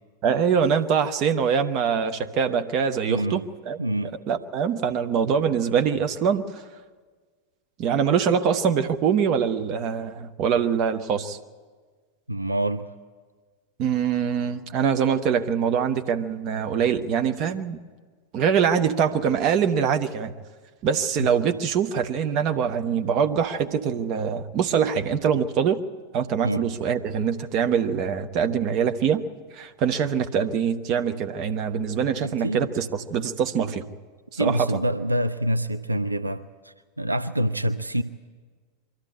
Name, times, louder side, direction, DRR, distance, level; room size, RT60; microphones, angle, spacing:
voice 1, 0.2-3.4 3.7-3.8 4.3-6.4 7.8-11.4 13.8-17.8 18.3-20.3 20.8-25.8 26.1-29.2 29.5-33.9 34.3-34.8, right 7 dB, 40° right, 7 dB, 1.0 m, -24 dB
voice 2, 3.1-3.4 3.8-4.1 12.3-12.9 21.2-21.3 26.4-26.7 32.2-32.7 34.4-38.0, right 1 dB, 85° right, 9 dB, 0.6 m, -26 dB
24.0 x 13.5 x 9.5 m, 1.5 s
figure-of-eight pair, 90°, 0 cm